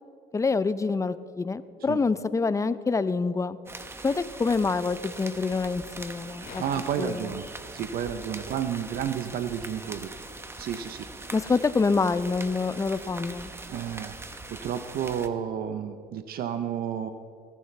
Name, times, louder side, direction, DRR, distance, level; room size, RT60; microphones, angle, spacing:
voice 1, 0.3-3.6 4.0-6.6 7.0-7.3 11.3-13.5, left 4 dB, 20° left, 14 dB, 0.5 m, -26 dB
sound 1, 3.7-15.3, right 2 dB, 15° right, 0.9 m, -42 dB
voice 2, 6.4-7.5 7.7-10.1 10.6-11.3 13.7-14.2 14.5-17.1, right 8 dB, 60° right, 9 dB, 0.7 m, -31 dB
sound 2, 6.5-8.2 11.1-11.2, left 4 dB, 60° left, 2.4 m, -49 dB
20.0 x 14.5 x 3.3 m, 2.3 s
cardioid pair, 110°, 17 cm